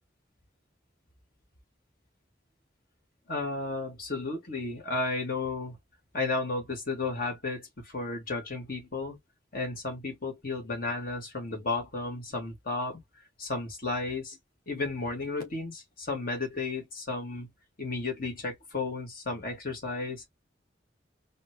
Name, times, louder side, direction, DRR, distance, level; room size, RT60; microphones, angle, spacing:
voice 1, 3.3-5.8 6.1-9.2 9.5-13.0 13.4-14.4 14.7-17.5 17.8-20.3, left 3 dB, 55° left, 1.9 m, -33 dB
4.3 x 2.2 x 3.0 m
head